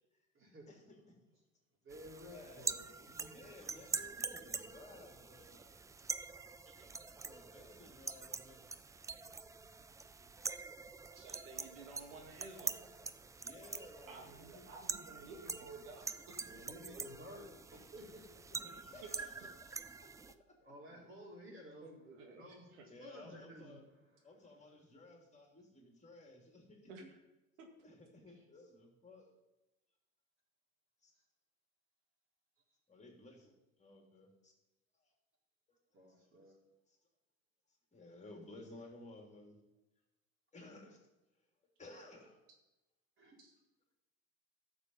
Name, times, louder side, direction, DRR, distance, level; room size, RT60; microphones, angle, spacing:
voice 1, 0.3-1.0 1.8-3.4 16.4-18.9 20.6-21.9 22.2-24.4 28.3-28.4 31.1-31.2 35.9-36.6 43.2-43.4, equal, 30° right, -1 dB, 4.4 m, -54 dB
sound 1, 1.9-20.3, right 4 dB, 10° right, 0.3 m, -45 dB
voice 2, 2.3-2.7 3.2-5.6 7.2-8.6 13.4-14.6 18.5-20.1 22.9-23.8 24.2-26.9 27.8-29.3 31.0-31.1 32.9-34.5 35.0-35.1 35.7-35.8 37.9-39.6 40.5-41.0 41.8-42.4, left 2 dB, 15° left, 1 dB, 3.1 m, -56 dB
voice 3, 11.1-12.9 14.1-16.4 19.0-19.3 21.8-22.9 26.9-27.2 27.6-27.7 43.4-43.5, right 3 dB, 70° right, 3 dB, 2.0 m, -53 dB
14.0 x 7.0 x 5.6 m, 1.0 s
hypercardioid pair, 75°, 41 cm